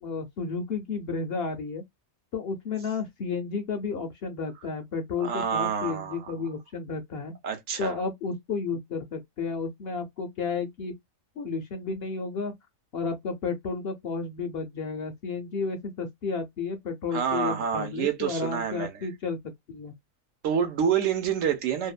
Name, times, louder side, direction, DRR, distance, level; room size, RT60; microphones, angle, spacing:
voice 1, 0.0-1.8 2.3-7.3 7.8-10.9 11.4-12.5 12.9-19.9, left 4 dB, 60° left, 0.7 m, -32 dB
voice 2, 5.2-6.3 7.4-8.0 17.1-19.0 20.4-21.9, right 7 dB, 70° right, 1.1 m, -28 dB
2.7 x 2.1 x 2.3 m
omnidirectional pair, 1.4 m